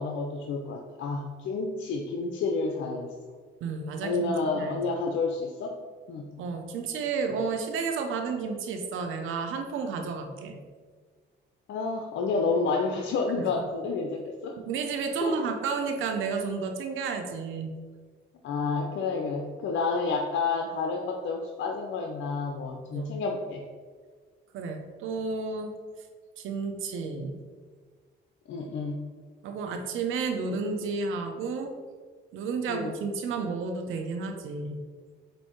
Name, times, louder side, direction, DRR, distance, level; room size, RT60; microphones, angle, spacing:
voice 1, 0.0-3.1 4.0-5.7 6.1-6.3 11.7-14.6 15.2-15.5 18.4-23.6 28.5-29.0 32.7-32.9, left 4 dB, 70° left, 1 dB, 0.7 m, -30 dB
voice 2, 3.6-4.8 6.4-10.6 13.4-13.5 14.7-17.7 22.9-23.1 24.5-25.7 26.4-27.4 29.4-31.7 32.3-34.8, right 4 dB, 85° right, 5 dB, 0.8 m, -31 dB
7.7 x 2.7 x 4.5 m, 1.5 s
cardioid pair, 90°, 20 cm